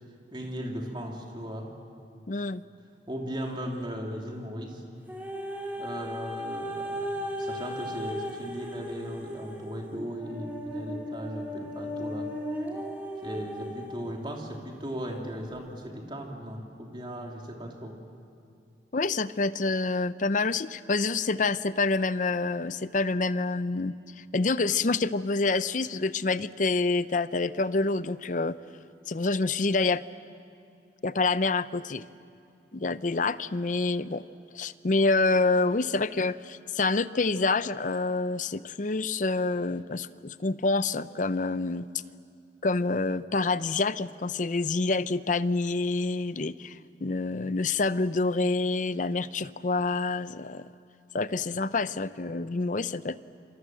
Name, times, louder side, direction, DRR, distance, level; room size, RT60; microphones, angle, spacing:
voice 1, 0.3-1.7 3.1-4.8 5.8-12.3 13.2-17.9, equal, 30° right, 0 dB, 3.2 m, -37 dB
voice 2, 2.3-2.6 18.9-28.6 29.1-30.0 31.0-32.0 32.7-34.2 34.5-41.9 42.6-50.7 51.1-53.2, left 3 dB, 45° left, 15 dB, 0.6 m, -27 dB
sound 1, 5.1-14.2 14.8-14.9, equal, 10° right, 4.7 m, -36 dB
28.0 x 24.0 x 7.8 m, 2.6 s
head